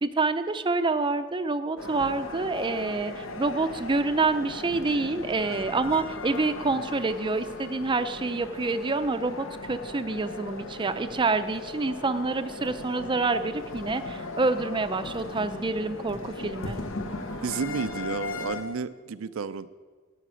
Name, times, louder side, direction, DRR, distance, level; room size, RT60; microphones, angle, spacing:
voice 1, 0.0-16.8, right 3 dB, 25° right, 10 dB, 0.5 m, -27 dB
sound 1, 1.8-18.6, left 3 dB, 75° left, 1.1 m, -38 dB
voice 2, 17.4-19.7, right 5 dB, 80° right, 13 dB, 0.5 m, -31 dB
12.5 x 5.8 x 8.5 m, 1.4 s
head